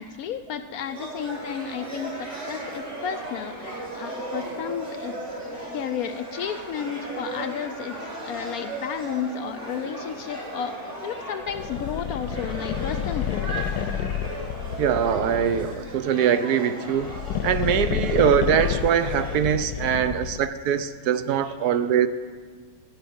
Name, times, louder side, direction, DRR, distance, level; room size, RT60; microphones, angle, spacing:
voice 1, 0.0-5.2 5.7-8.0 8.2-13.5 17.9-18.1, left 7 dB, 70° left, 0.9 m, -32 dB
sound 1, 0.8-19.4, right 1 dB, 40° right, 3.8 m, -36 dB
sound 2, 11.5-15.9 16.9-20.5, left 10 dB, 85° left, 1.2 m, -30 dB
voice 2, 14.8-17.1 17.4-22.1, right 8 dB, 70° right, 1.1 m, -22 dB
14.5 x 5.1 x 9.3 m
omnidirectional pair, 1.9 m